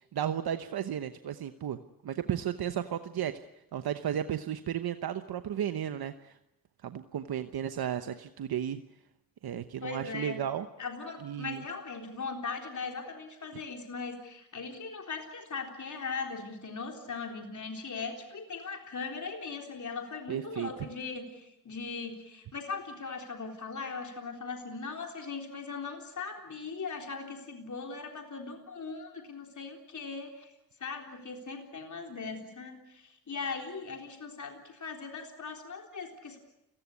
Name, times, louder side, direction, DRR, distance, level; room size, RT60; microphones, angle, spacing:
voice 1, 0.1-1.8 2.0-3.3 3.7-6.3 6.8-8.8 9.4-10.7 11.2-11.6 20.3-20.7, right 10 dB, 80° right, 9 dB, 1.0 m, -34 dB
voice 2, 9.8-10.4 10.8-30.5 30.8-36.4, left 4 dB, 50° left, 2 dB, 3.8 m, -39 dB
29.5 x 17.0 x 8.4 m, 0.86 s
cardioid pair, 75°, 37 cm